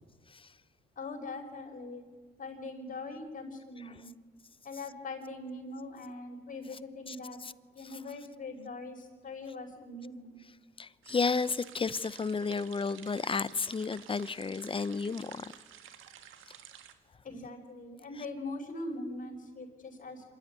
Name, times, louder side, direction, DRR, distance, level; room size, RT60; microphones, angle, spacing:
voice 1, 1.0-2.1 2.4-4.1 4.6-7.4 7.7-10.4 17.2-20.3, left 2 dB, 45° left, 5.5 m, -42 dB
voice 2, 10.8-15.5, left 4 dB, 25° left, 0.7 m, -32 dB
sound 1, 11.0-16.9, right 9 dB, 85° right, 1.7 m, -52 dB
26.5 x 12.5 x 9.7 m
cardioid pair, 90°, 20 cm